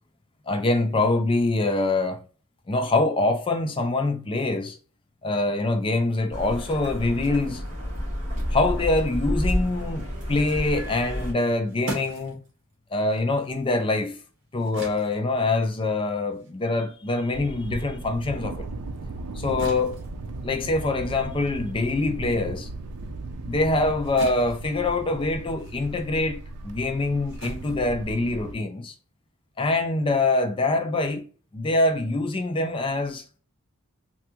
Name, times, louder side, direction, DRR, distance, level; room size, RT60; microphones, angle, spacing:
voice 1, 0.5-2.2 2.7-4.8 5.2-7.6 8.5-12.4 12.9-14.2 14.5-18.7 19.3-20.0 20.4-22.7 23.4-28.9 29.6-31.2 31.5-33.2, left 2 dB, 25° left, 0.4 m, -24 dB
sound 1, 6.3-11.3, equal, 35° right, 1.4 m, -30 dB
sound 2, 11.3-18.1 18.5-28.7, right 1 dB, 60° right, 1.2 m, -43 dB
Thunder, 17.3-28.5, right 2 dB, 90° right, 0.4 m, -36 dB
3.4 x 2.3 x 2.8 m
head